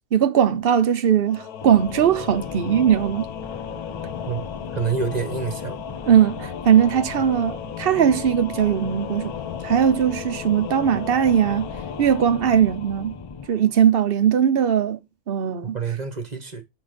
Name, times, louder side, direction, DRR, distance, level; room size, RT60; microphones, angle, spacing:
voice 1, 0.1-3.3 6.1-9.3 9.6-11.7 12.0-13.2 13.5-15.0 15.3-15.8, right 9 dB, 50° right, 0.8 m, -19 dB
Singing / Musical instrument, 1.3-13.7, left 9 dB, 85° left, 1.3 m, -35 dB
sound 1, 1.6-13.5, left 4 dB, 30° left, 0.5 m, -38 dB
voice 2, 4.7-5.8 15.7-16.6, right 6 dB, 30° right, 1.2 m, -27 dB
10.0 x 3.5 x 5.1 m
omnidirectional pair, 1.5 m